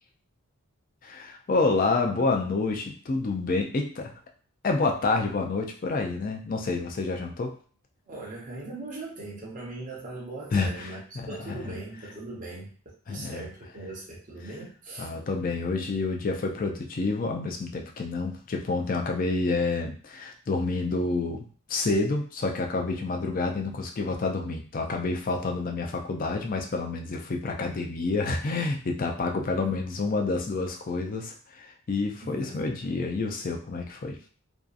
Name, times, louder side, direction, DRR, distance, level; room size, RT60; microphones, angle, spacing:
voice 1, 1.0-4.1 4.6-7.5 10.5-11.6 13.1-13.5 15.0-21.4 21.7-34.2, left 3 dB, 40° left, 3 dB, 0.3 m, -28 dB
voice 2, 8.1-15.1 29.6-29.7 32.2-32.6, right 2 dB, 35° right, -4 dB, 0.6 m, -40 dB
2.6 x 2.3 x 2.4 m, 0.43 s
head